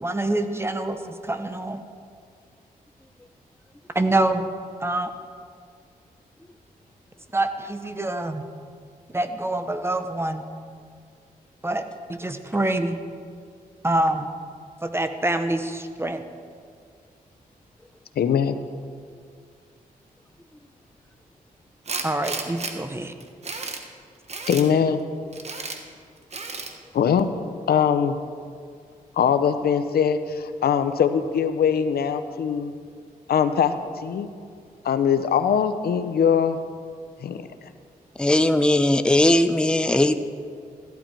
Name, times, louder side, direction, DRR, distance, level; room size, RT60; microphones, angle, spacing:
voice 1, 0.0-1.8 3.9-4.5 4.8-5.1 7.3-8.4 9.1-10.4 11.6-11.8 12.1-13.0 13.8-14.3 14.8-16.2 22.0-23.1, right 2 dB, 15° right, 8 dB, 1.0 m, -25 dB
voice 2, 18.2-18.6 24.5-25.0 26.9-27.3 27.7-28.2 29.2-32.7 33.3-33.7 34.0-34.3 34.8-36.6 37.2-37.4, left 7 dB, 80° left, 10 dB, 0.7 m, -21 dB
Tools, 21.9-22.7 23.2-23.8 24.3-24.7 25.3-25.8 26.3-26.7, right 4 dB, 45° right, 1.3 m, -32 dB
voice 3, 38.2-40.1, left 1 dB, 5° left, 9 dB, 0.6 m, -19 dB
14.5 x 11.5 x 4.5 m, 2.1 s
cardioid pair, 75°, 16 cm